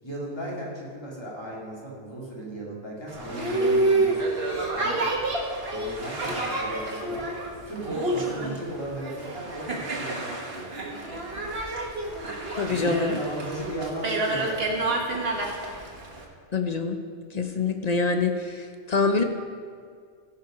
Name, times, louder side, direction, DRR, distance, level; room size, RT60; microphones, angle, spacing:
voice 1, 0.0-4.2 4.7-5.1 5.7-7.3 7.6-10.7 12.0-12.1 12.7-15.0, right 1 dB, 20° left, -4 dB, 2.4 m, -35 dB
Boat Water vehicle, 3.1-16.2, right 2 dB, 55° right, 1.5 m, -29 dB
voice 2, 12.6-13.2 16.5-17.0 17.3-19.2, left 4 dB, 45° left, 6 dB, 0.6 m, -25 dB
15.5 x 5.8 x 5.1 m, 2.1 s
omnidirectional pair, 1.2 m